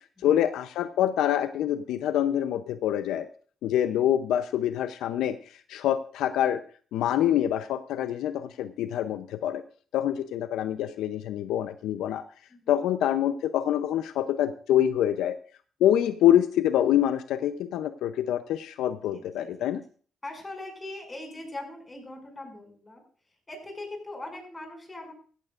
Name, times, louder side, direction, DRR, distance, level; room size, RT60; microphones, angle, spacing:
voice 1, 0.2-3.3 3.6-5.4 5.7-6.6 6.9-9.6 9.9-12.2 12.7-15.4 15.8-19.8, left 11 dB, 85° left, 11 dB, 0.6 m, -25 dB
voice 2, 12.5-12.8 19.1-19.7 20.2-23.0 23.5-25.1, left 2 dB, 20° left, 3 dB, 6.4 m, -41 dB
16.0 x 14.5 x 2.5 m, 0.42 s
cardioid pair, 90°, 0 cm